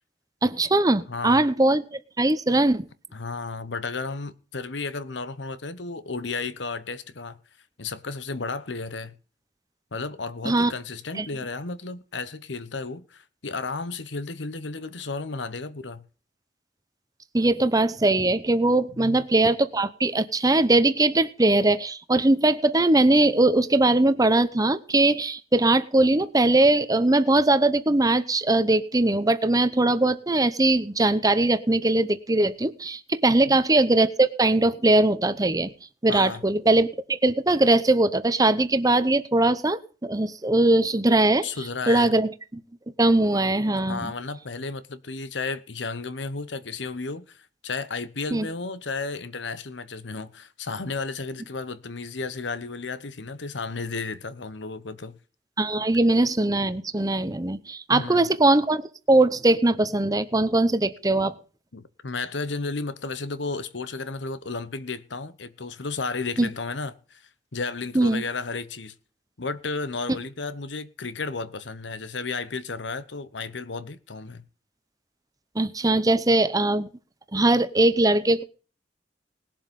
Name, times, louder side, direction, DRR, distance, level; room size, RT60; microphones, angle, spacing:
voice 1, 0.4-2.9 10.4-10.7 11.2-11.3 17.3-35.7 36.0-41.5 41.9-42.3 43.0-44.1 48.3-48.5 55.6-61.4 66.4-66.5 67.9-68.2 75.5-76.9 77.3-78.4, right 2 dB, 20° right, 0.8 m, -21 dB
voice 2, 1.1-1.5 3.1-7.4 7.8-9.1 9.9-16.0 19.0-19.2 33.5-33.6 36.1-36.4 41.4-42.1 43.8-55.2 57.9-58.3 61.7-68.9 69.4-74.4, left 4 dB, 80° left, 1.1 m, -33 dB
19.5 x 7.4 x 5.3 m
head